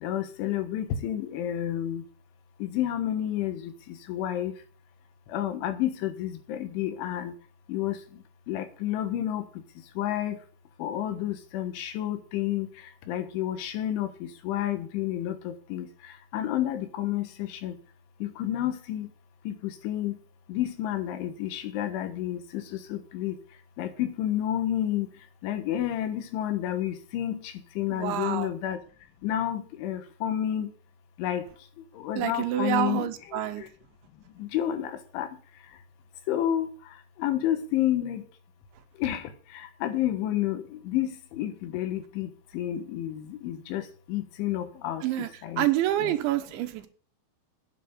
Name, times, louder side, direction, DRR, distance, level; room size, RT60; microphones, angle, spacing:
voice 1, 0.0-2.0 2.6-4.5 5.3-7.3 7.7-8.0 8.5-9.4 10.0-10.4 10.8-12.7 13.1-15.9 16.3-17.7 18.2-19.1 19.5-20.2 20.5-22.6 22.9-23.4 23.8-25.1 25.4-28.8 29.2-30.7 31.2-31.5 32.0-33.7 34.4-35.3 36.3-36.7 37.2-38.2 39.0-39.2 39.5-43.8 44.1-45.7 46.0-46.2, left 12 dB, 80° left, 9 dB, 3.8 m, -30 dB
voice 2, 27.9-28.5 32.2-33.7 45.0-45.3 45.6-46.9, right 13 dB, 80° right, 9 dB, 3.2 m, -27 dB
9.2 x 8.3 x 7.9 m, 0.41 s
omnidirectional pair, 5.5 m